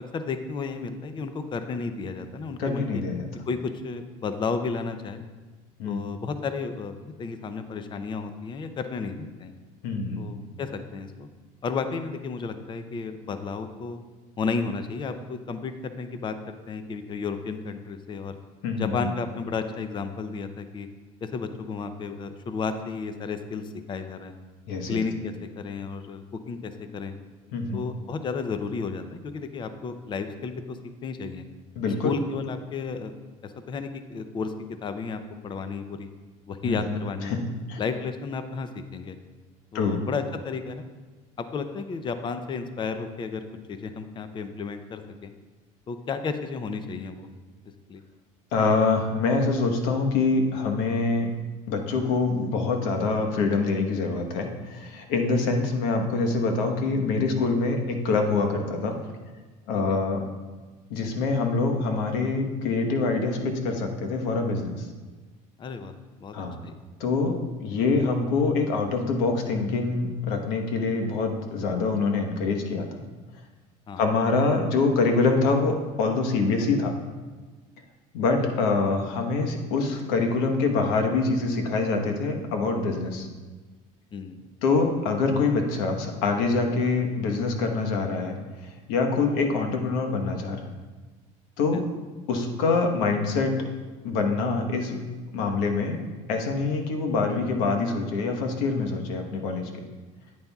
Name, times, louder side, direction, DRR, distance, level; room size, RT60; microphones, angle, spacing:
voice 1, 0.0-3.0 3.5-5.2 5.8-6.9 7.2-9.5 10.2-11.3 11.6-14.0 14.4-18.4 18.8-20.9 21.2-24.3 24.9-27.1 27.7-31.4 31.9-33.1 33.4-34.5 34.8-36.1 36.5-37.4 37.8-39.2 39.7-40.8 41.4-45.3 45.9-47.3 47.9-48.0 59.9-60.0 65.6-65.9 66.2-66.3 66.6-66.8 73.9-74.0 84.1-84.4 91.7-91.8, left 5 dB, 30° left, 9 dB, 0.6 m, -32 dB
voice 2, 2.6-3.2 5.8-6.1 9.8-10.3 18.6-18.9 24.7-25.0 27.5-27.8 31.8-32.1 36.6-36.8 37.3-37.8 39.7-40.0 48.5-51.3 51.7-59.0 59.7-60.2 60.9-64.9 66.3-66.6 67.0-73.0 74.0-76.9 78.1-83.3 84.6-88.4 88.9-90.7 91.6-91.8 92.3-93.6 94.0-95.0 95.3-96.0 96.3-99.7, left 3 dB, 80° left, 4 dB, 1.2 m, -25 dB
9.3 x 9.0 x 2.4 m, 1.3 s
cardioid pair, 115°, 16 cm